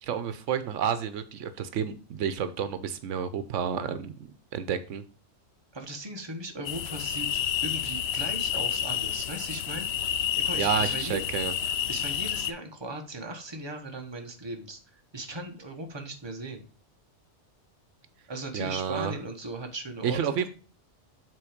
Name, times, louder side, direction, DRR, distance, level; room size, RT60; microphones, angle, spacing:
voice 1, 0.0-4.1 4.5-5.0 10.6-11.5 18.5-19.1 20.0-20.5, right 8 dB, 85° right, 11 dB, 1.0 m, -30 dB
voice 2, 5.7-9.9 10.3-11.2 11.9-16.6 18.3-20.5, right 2 dB, 25° right, 4 dB, 1.1 m, -38 dB
sound 1, 6.6-12.5, left 10 dB, 65° left, 0.8 m, -30 dB
7.5 x 3.8 x 5.0 m, 0.38 s
omnidirectional pair, 1.2 m